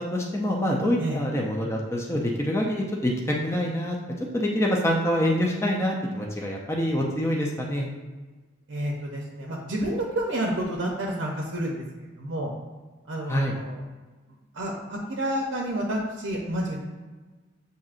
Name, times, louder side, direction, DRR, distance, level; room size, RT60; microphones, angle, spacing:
voice 1, 0.0-4.0 4.3-7.9 13.3-13.5, equal, 15° left, -1 dB, 0.4 m, -26 dB
voice 2, 8.7-12.5 13.1-13.8 14.5-16.8, right 1 dB, 70° right, -1 dB, 0.6 m, -30 dB
7.2 x 2.7 x 2.4 m, 1.3 s
head